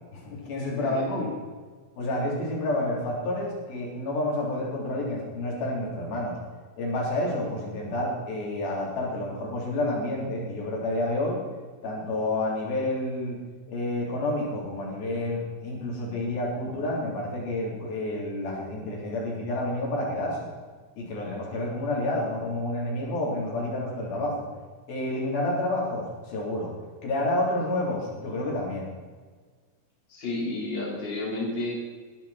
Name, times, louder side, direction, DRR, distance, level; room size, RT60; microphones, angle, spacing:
voice 1, 0.1-1.3 2.0-6.4 6.8-11.4 11.8-13.4 13.7-20.5 21.0-24.5 24.9-26.7 27.0-28.9, left 1 dB, 80° left, -3 dB, 5.6 m, -29 dB
voice 2, 30.1-31.7, left 2 dB, 30° left, -5 dB, 4.7 m, -31 dB
21.0 x 12.0 x 4.4 m, 1.5 s
omnidirectional pair, 4.2 m